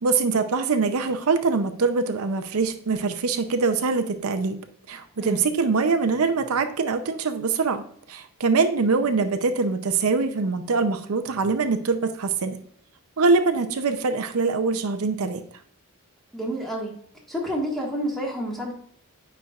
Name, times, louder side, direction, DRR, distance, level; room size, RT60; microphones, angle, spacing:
voice 1, 0.0-4.6 4.9-12.6 13.2-15.4, right 4 dB, 75° right, 8 dB, 0.6 m, -23 dB
voice 2, 16.3-16.9 17.3-18.7, equal, ahead, -3 dB, 1.6 m, -29 dB
9.4 x 4.4 x 2.4 m, 0.62 s
head